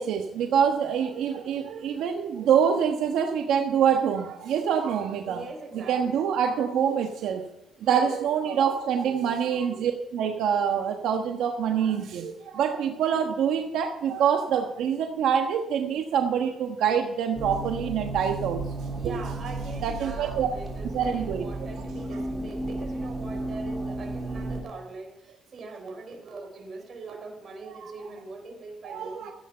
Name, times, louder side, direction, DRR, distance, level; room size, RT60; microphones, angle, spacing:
voice 1, 0.0-5.4 5.7-7.5 7.8-19.1 19.8-20.5 20.9-21.4 27.8-27.9 28.8-29.3, right 8 dB, 85° right, 3 dB, 1.2 m, -25 dB
voice 2, 5.2-6.3 7.8-8.1 8.4-8.8 12.4-12.5 19.0-29.3, right 3 dB, 50° right, 4 dB, 4.3 m, -42 dB
sound 1, 17.4-24.6, right 2 dB, 15° right, 3.5 m, -34 dB
15.0 x 9.4 x 5.6 m, 0.91 s
cardioid pair, 90°, 0 cm